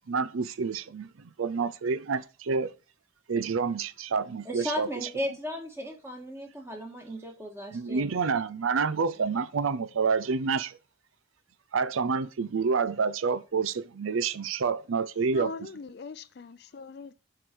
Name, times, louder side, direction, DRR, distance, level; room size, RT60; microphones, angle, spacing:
voice 1, 0.1-2.7 3.3-4.9 7.7-10.8 11.7-15.5, right 5 dB, 90° right, 0.5 m, -28 dB
voice 2, 4.5-8.2, equal, 15° right, 1.7 m, -36 dB
voice 3, 15.3-17.1, left 4 dB, 55° left, 0.4 m, -41 dB
7.7 x 5.0 x 6.1 m
head